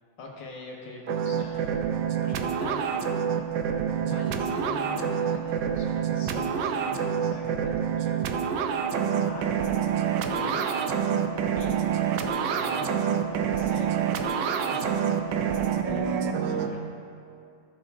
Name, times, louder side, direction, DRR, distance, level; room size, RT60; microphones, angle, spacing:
voice 1, 0.2-1.6 2.2-3.2 4.0-8.2 9.2-9.5 10.3-10.7 11.5-11.8 12.5-12.9 13.5-13.9 14.5-15.0 15.8-16.1 16.4-16.9, left 3 dB, 65° left, -2 dB, 2.0 m, -42 dB
sound 1, 1.1-16.7, right 7 dB, 75° right, 1.2 m, -27 dB
14.5 x 5.1 x 3.6 m, 2.4 s
omnidirectional pair, 2.2 m